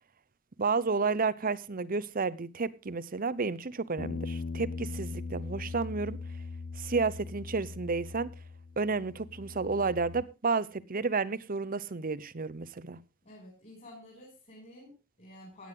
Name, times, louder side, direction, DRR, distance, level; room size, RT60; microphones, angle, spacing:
voice 1, 0.6-6.2 6.8-8.3 8.8-13.0, right 4 dB, 40° right, 0.7 m, -31 dB
sound 1, 4.0-10.2, left 4 dB, 85° left, 0.7 m, -40 dB
voice 2, 13.2-15.7, left 1 dB, 35° left, 6.4 m, -51 dB
16.5 x 9.6 x 3.8 m
head